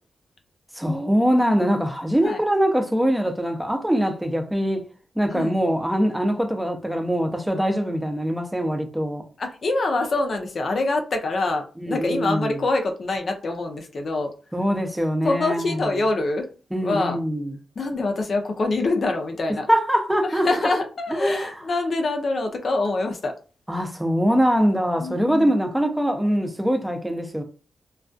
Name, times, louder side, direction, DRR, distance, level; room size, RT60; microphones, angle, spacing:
voice 1, 0.7-4.9 5.2-9.2 11.8-12.6 14.5-15.9 16.7-17.6 19.7-20.5 21.1-21.6 23.7-27.4, equal, 5° right, 0.5 m, -23 dB
voice 2, 9.4-14.3 15.2-16.5 16.8-17.2 17.8-19.7 20.2-23.3 25.0-25.5, left 2 dB, 55° left, 0.5 m, -25 dB
2.3 x 2.2 x 2.5 m
cardioid pair, 75°, 0 cm